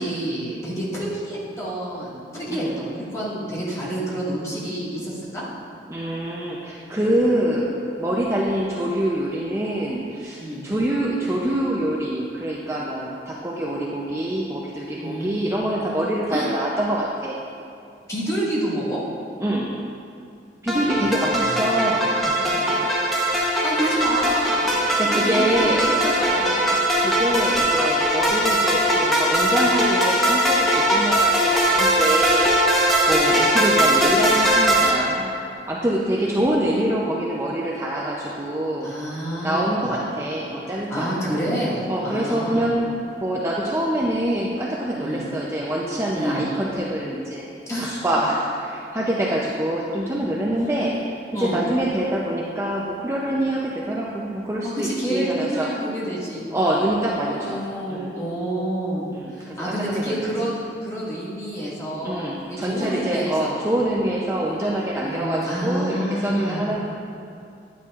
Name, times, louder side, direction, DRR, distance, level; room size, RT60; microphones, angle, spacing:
voice 1, 0.0-5.4 10.4-10.7 15.0-15.3 16.3-16.5 18.1-19.0 21.0-21.7 23.6-26.9 33.1-33.4 38.8-39.6 39.8-40.0 40.9-42.7 45.0-45.3 46.1-46.4 47.7-48.1 51.3-51.7 54.6-56.5 57.3-63.5 65.0-66.6, right 1 dB, 15° left, -8 dB, 1.9 m, -28 dB
voice 2, 5.9-17.4 19.4-19.7 20.6-22.9 24.6-25.9 27.0-32.5 33.1-35.3 35.7-38.9 39.4-41.4 41.9-42.9 43.2-47.5 47.8-55.7 56.5-57.6 57.9-58.1 59.1-59.4 59.7-60.2 62.0-66.8, right 1 dB, 15° right, -4 dB, 0.5 m, -25 dB
sound 1, 20.7-34.9, right 1 dB, ahead, 1.0 m, -20 dB
9.9 x 9.3 x 2.4 m, 2.5 s
head